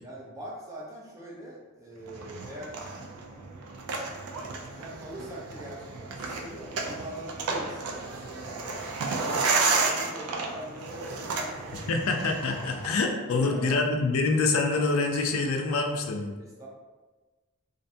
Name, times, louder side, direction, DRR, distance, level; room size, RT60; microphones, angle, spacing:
voice 1, 0.0-2.8 4.7-12.0 13.3-13.8 16.4-16.7, equal, 15° right, -4 dB, 0.4 m, -43 dB
sound 1, 2.1-12.9, right 3 dB, 85° right, 0.4 m, -32 dB
voice 2, 11.9-16.3, left 3 dB, 70° left, 3 dB, 0.3 m, -26 dB
2.5 x 2.2 x 2.6 m, 1.2 s
head